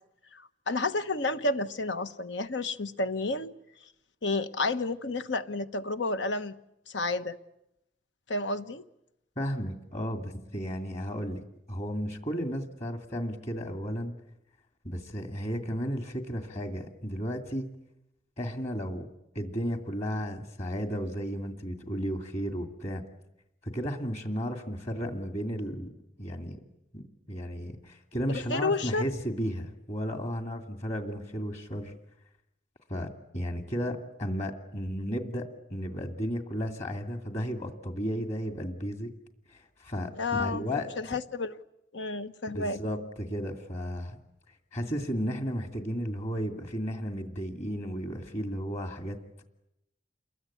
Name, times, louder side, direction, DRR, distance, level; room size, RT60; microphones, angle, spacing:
voice 1, 0.3-3.5 4.2-6.5 6.9-7.4 8.3-8.8 28.3-29.1 40.2-40.6 41.0-41.6 41.9-42.8, left 2 dB, 80° left, 1.3 m, -31 dB
voice 2, 9.4-11.4 11.7-14.1 14.8-17.7 18.4-19.1 19.3-23.0 23.6-25.9 26.2-26.6 26.9-27.0 27.3-31.9 32.9-33.1 33.3-35.4 35.7-39.1 39.5-40.9 42.5-44.2 44.7-49.4, equal, 40° left, 2.5 m, -34 dB
28.5 x 22.0 x 8.7 m
head